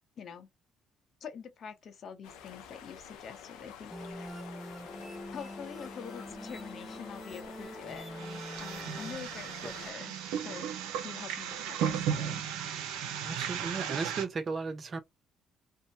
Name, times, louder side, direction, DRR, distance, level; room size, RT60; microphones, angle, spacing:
voice 1, 0.2-0.5 1.2-4.3 5.3-10.7 11.0-12.4, left 7 dB, 55° left, 0.8 m, -46 dB
sound 1, 2.2-9.9, left 8 dB, 85° left, 0.6 m, -49 dB
sound 2, 3.9-9.1, equal, ahead, 0.6 m, -44 dB
sound 3, 8.1-14.2, right 8 dB, 85° right, 0.5 m, -35 dB
voice 2, 13.2-15.0, right 4 dB, 45° right, 0.7 m, -35 dB
2.6 x 2.1 x 2.6 m
supercardioid pair, 70°, 0 cm